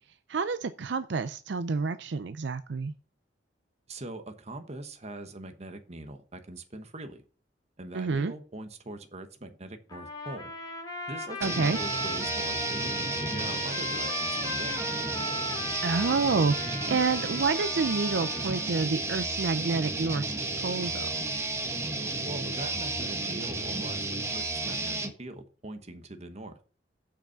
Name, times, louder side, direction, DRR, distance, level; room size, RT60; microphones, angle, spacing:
voice 1, 0.3-2.9 7.9-8.3 11.4-11.8 15.8-21.2, right 4 dB, 70° right, 0.5 m, -29 dB
voice 2, 3.9-7.2 7.8-10.5 11.1-14.8 22.2-24.0 24.3-26.5, right 2 dB, 35° right, 1.2 m, -42 dB
Trumpet, 9.9-18.7, left 1 dB, 25° left, 2.2 m, -37 dB
sound 1, 11.4-25.1, right 2 dB, 15° right, 1.2 m, -32 dB
7.1 x 5.8 x 5.7 m
head